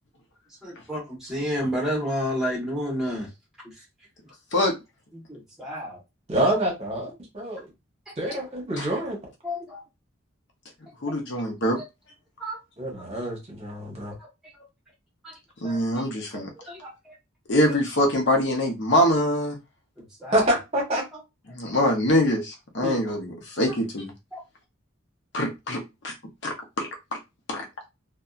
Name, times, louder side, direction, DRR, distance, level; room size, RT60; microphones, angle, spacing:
voice 1, 0.6-3.3 5.1-6.0 6.5-6.6 8.1-8.4 9.4-9.8 11.7-11.8 12.4-12.6 15.2-15.3 15.6-15.9 16.3-17.1 17.7-17.8 20.2-20.5 20.9-21.0 24.3-24.4, equal, ahead, -4 dB, 1.1 m, -31 dB
voice 2, 6.3-7.7 8.2-9.2 12.8-14.1 20.3-21.0 22.8-23.0, right 1 dB, 30° right, -1 dB, 1.0 m, -26 dB
voice 3, 11.0-11.8 15.6-16.5 17.5-19.6 21.5-24.1 25.3-26.1 26.4-26.9 27.5-27.6, left 1 dB, 55° left, 2 dB, 0.7 m, -24 dB
2.7 x 2.2 x 2.4 m, 0.23 s
head